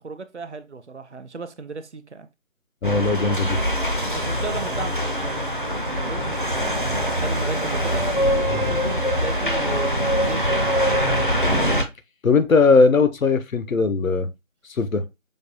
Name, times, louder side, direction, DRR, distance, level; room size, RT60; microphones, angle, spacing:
voice 1, 0.0-2.3 4.1-8.0 8.5-11.5, right 4 dB, 60° right, 0.6 m, -36 dB
voice 2, 2.8-3.6 12.2-14.3 14.7-15.0, left 4 dB, 80° left, 0.7 m, -19 dB
sound 1, 2.8-11.8, equal, 40° left, 0.5 m, -23 dB
5.1 x 2.2 x 2.8 m
figure-of-eight pair, 160°, 40 cm